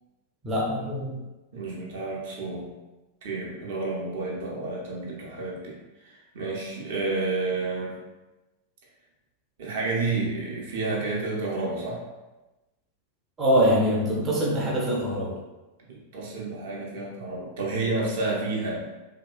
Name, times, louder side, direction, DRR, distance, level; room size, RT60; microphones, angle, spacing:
voice 1, 0.4-1.2 13.4-15.4, equal, 20° right, -4 dB, 0.6 m, -24 dB
voice 2, 1.5-2.7 3.2-5.8 6.0-7.9 9.6-12.0 15.9-18.9, right 3 dB, 55° right, -4 dB, 0.7 m, -30 dB
2.9 x 2.8 x 2.2 m, 1.1 s
figure-of-eight pair, 90°, 0 cm